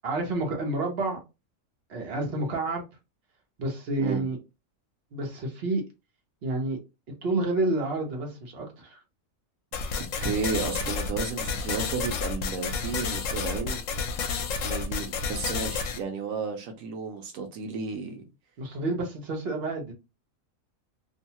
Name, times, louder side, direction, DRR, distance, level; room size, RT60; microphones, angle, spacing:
voice 1, 0.0-1.2 1.9-2.8 3.6-4.4 5.1-5.8 6.4-6.8 7.2-9.0 18.6-19.9, right 2 dB, 50° right, 1.0 m, -29 dB
sound 1, 9.7-16.0, left 5 dB, 75° left, 0.9 m, -30 dB
voice 2, 10.0-13.8 14.6-18.2, right 5 dB, 85° right, 1.0 m, -33 dB
2.7 x 2.2 x 2.8 m
omnidirectional pair, 1.4 m